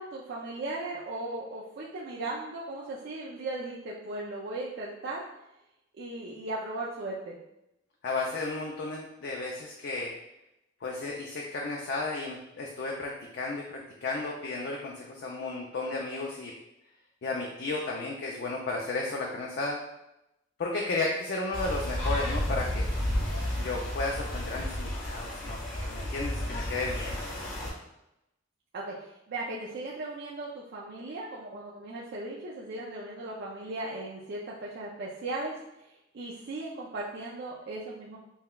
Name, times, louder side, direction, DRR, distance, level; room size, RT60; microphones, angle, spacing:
voice 1, 0.0-5.2 6.0-7.4 28.7-35.6 36.1-38.2, right 2 dB, 55° right, -4 dB, 0.4 m, -37 dB
voice 2, 8.0-10.1 10.8-16.5 17.2-19.8 20.6-22.9 23.6-25.6 25.9-27.2, left 3 dB, 60° left, -1 dB, 0.4 m, -33 dB
sound 1, 21.5-27.7, left 1 dB, 80° left, 1.5 m, -32 dB
5.5 x 2.2 x 2.3 m, 0.87 s
head